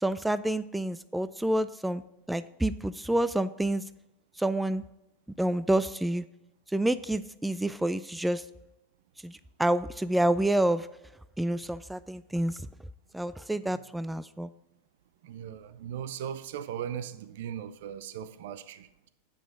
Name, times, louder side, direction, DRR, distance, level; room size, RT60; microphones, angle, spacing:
voice 1, 0.0-2.0 2.3-3.8 4.4-4.8 5.4-6.2 6.7-8.4 9.2-10.9 11.4-12.5 13.1-14.5, right 1 dB, 5° right, 0.3 m, -28 dB
voice 2, 15.2-19.1, right 9 dB, 70° right, 0.6 m, -38 dB
8.3 x 6.0 x 4.8 m
hypercardioid pair, 105°, 0 cm